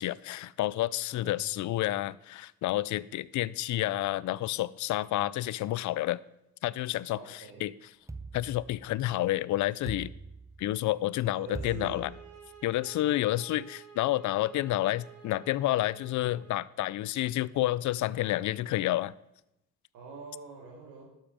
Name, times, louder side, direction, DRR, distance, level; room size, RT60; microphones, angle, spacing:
voice 1, 0.0-6.2 6.6-7.7 8.3-10.1 10.6-12.1 12.6-19.1, left 15 dB, 75° left, 20 dB, 0.5 m, -30 dB
voice 2, 1.1-1.5 7.1-7.7 11.3-12.0 13.1-13.2 19.9-21.1, right 4 dB, 85° right, -1 dB, 2.2 m, -45 dB
sound 1, 8.1-9.2 9.9-10.9 11.6-12.7, right 3 dB, 10° right, 0.6 m, -43 dB
sound 2, 11.7-16.6, right 7 dB, 55° right, 2.0 m, -52 dB
12.0 x 7.3 x 5.1 m, 0.86 s
cardioid pair, 90°, 30 cm